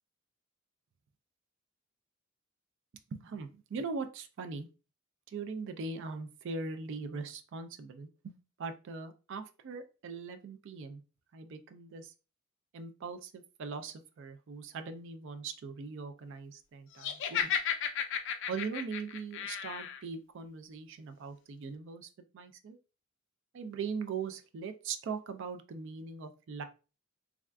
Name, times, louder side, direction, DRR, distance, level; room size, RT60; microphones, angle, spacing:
voice 1, 3.1-4.7 5.3-11.0 11.3-12.1 12.7-17.5 18.5-22.8 23.5-26.6, right 4 dB, 60° right, 8 dB, 0.3 m, -41 dB
Laughter, 17.0-20.0, left 8 dB, 60° left, 0.4 m, -34 dB
3.5 x 2.3 x 2.2 m, 0.33 s
head